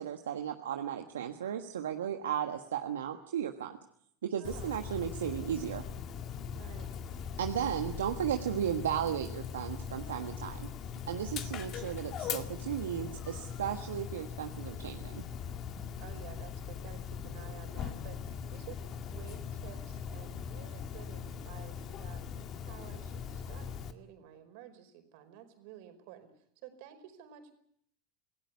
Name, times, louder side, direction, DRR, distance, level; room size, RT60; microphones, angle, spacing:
voice 1, 0.0-3.8 4.2-5.8 7.4-10.7 11.1-15.2, right 9 dB, 85° right, 5 dB, 1.5 m, -35 dB
Dog, 4.4-23.9, left 7 dB, 45° left, 2.0 m, -40 dB
voice 2, 4.4-4.7 6.5-6.9 16.0-22.3 22.7-27.5, right 11 dB, 65° right, 8 dB, 4.8 m, -52 dB
26.5 x 17.0 x 8.4 m, 0.69 s
hypercardioid pair, 95°, 0 cm